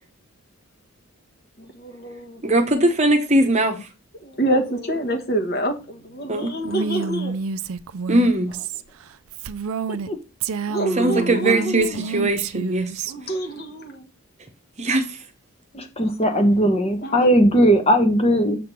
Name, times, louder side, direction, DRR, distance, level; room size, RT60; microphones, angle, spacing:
voice 1, 1.8-2.6 4.2-7.3 10.7-11.9 13.1-14.0 17.0-17.2, right 1 dB, 45° left, 1.4 m, -26 dB
voice 2, 2.4-3.9 6.3-6.5 8.1-8.5 10.9-13.0 14.8-15.2, right 1 dB, 30° right, 1.0 m, -20 dB
Female speech woman speaking, 6.6-10.1 10.4-13.1, right 5 dB, 70° right, 0.4 m, -28 dB
voice 3, 15.7-18.6, equal, 25° left, 1.0 m, -18 dB
6.8 x 3.6 x 6.0 m
head